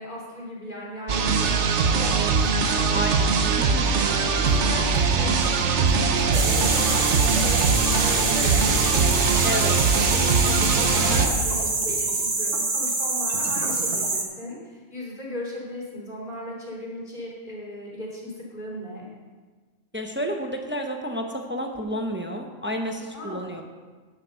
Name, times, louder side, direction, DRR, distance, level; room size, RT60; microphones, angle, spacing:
voice 1, 0.0-3.2 4.3-19.1 23.1-23.6, left 1 dB, 35° left, -5 dB, 3.1 m, -37 dB
sound 1, 1.1-11.3, right 5 dB, 60° right, 1.1 m, -21 dB
voice 2, 2.9-3.3 3.6-3.9 9.4-9.7 10.9-11.3 19.9-23.6, equal, 10° right, 3 dB, 0.8 m, -30 dB
sound 2, 4.1-9.4, right 3 dB, 80° right, 1.3 m, -42 dB
sound 3, 6.3-14.2, right 3 dB, 45° right, 1.5 m, -25 dB
10.0 x 7.7 x 6.4 m, 1.4 s
omnidirectional pair, 1.4 m